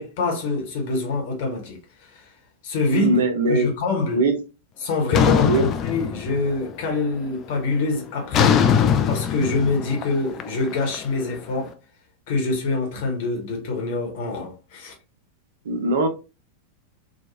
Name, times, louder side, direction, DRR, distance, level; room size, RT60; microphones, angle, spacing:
voice 1, 0.0-2.3 2.6-3.2 3.5-4.2 4.8-11.7 12.3-14.9, left 3 dB, 50° left, 1.0 m, -25 dB
voice 2, 2.9-3.7 4.1-4.3 5.5-5.7 15.6-16.1, right 3 dB, 60° right, 0.6 m, -20 dB
sound 1, 5.1-6.7 7.0-7.4 8.3-11.4, left 7 dB, 30° left, 0.3 m, -21 dB
3.0 x 2.3 x 2.7 m
figure-of-eight pair, 90°, 0 cm